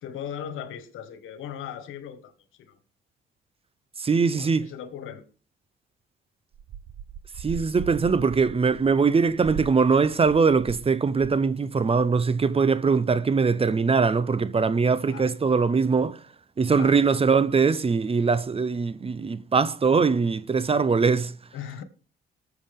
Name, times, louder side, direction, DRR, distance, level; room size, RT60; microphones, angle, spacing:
voice 1, 0.0-2.3 2.6-2.8 4.3-5.2 15.1-15.3 16.7-17.0 21.5-21.8, left 9 dB, 85° left, 1.6 m, -38 dB
voice 2, 4.0-4.7 7.4-16.2 16.6-21.3, right 5 dB, 30° right, 0.8 m, -22 dB
sound 1, 6.5-10.9 11.2-11.5, right 9 dB, 65° right, 0.9 m, -39 dB
18.5 x 7.1 x 3.7 m
cardioid pair, 90°, 20 cm